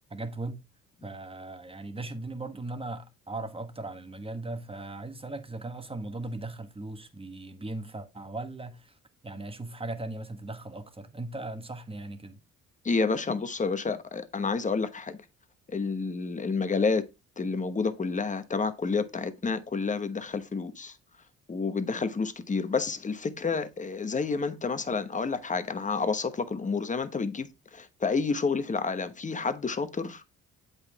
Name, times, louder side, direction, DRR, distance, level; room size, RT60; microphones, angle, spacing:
voice 1, 0.1-0.6 1.0-9.0 9.2-12.4, right 2 dB, 20° right, 1.3 m, -38 dB
voice 2, 12.8-15.2 15.7-17.0 17.4-21.0 21.5-30.3, left 4 dB, 25° left, 1.0 m, -29 dB
8.0 x 5.4 x 3.5 m
cardioid pair, 90°, 30 cm